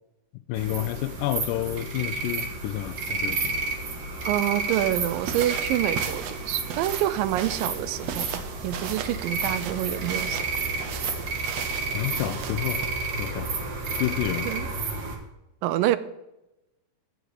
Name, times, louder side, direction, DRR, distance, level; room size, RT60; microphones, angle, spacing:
voice 1, 0.5-3.6 11.9-12.8 13.2-13.5 14.0-14.5, left 14 dB, 80° left, 13 dB, 2.1 m, -29 dB
sound 1, 0.5-15.2, right 3 dB, 50° right, 2.2 m, -31 dB
voice 2, 4.3-10.4 14.5-14.7 15.6-16.0, right 14 dB, 85° right, 15 dB, 2.3 m, -27 dB
sound 2, 4.7-12.9, right 8 dB, 70° right, 1.7 m, -37 dB
9.2 x 7.8 x 6.6 m, 0.91 s
omnidirectional pair, 3.9 m